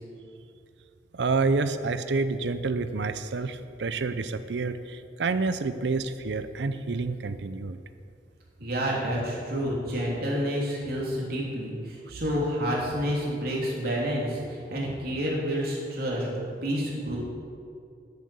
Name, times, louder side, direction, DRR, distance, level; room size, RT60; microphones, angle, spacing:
voice 1, 1.1-7.8, right 3 dB, 80° right, 11 dB, 0.6 m, -28 dB
voice 2, 8.6-16.3 16.6-17.2, equal, 60° right, -4 dB, 3.3 m, -29 dB
10.5 x 8.2 x 7.9 m, 2.4 s
head